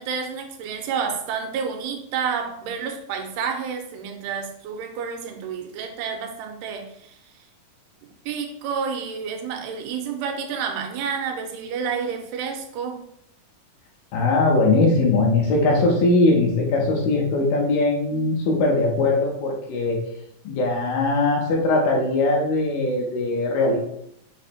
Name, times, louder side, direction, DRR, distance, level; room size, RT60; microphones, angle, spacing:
voice 1, 0.0-7.3 8.3-13.0, right 6 dB, 90° right, 4 dB, 2.6 m, -29 dB
voice 2, 14.1-20.0 20.5-23.8, left 2 dB, 75° left, 0 dB, 2.2 m, -20 dB
5.9 x 2.0 x 4.2 m, 0.73 s
omnidirectional pair, 4.3 m